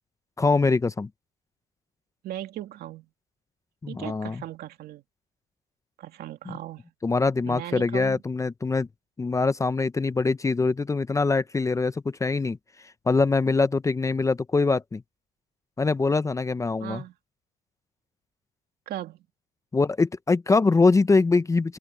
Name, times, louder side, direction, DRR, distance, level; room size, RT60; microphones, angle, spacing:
voice 1, 0.4-1.1 3.8-4.4 6.5-6.6 7.0-8.9 9.2-12.6 13.1-15.0 15.8-17.0 19.7-21.8, left 3 dB, 20° left, 0.7 m, -23 dB
voice 2, 2.2-3.1 3.9-5.0 6.0-6.8 7.4-8.2 16.8-17.1 18.9-19.3, right 13 dB, 70° right, 2.5 m, -37 dB
open air
cardioid pair, 110°, 17 cm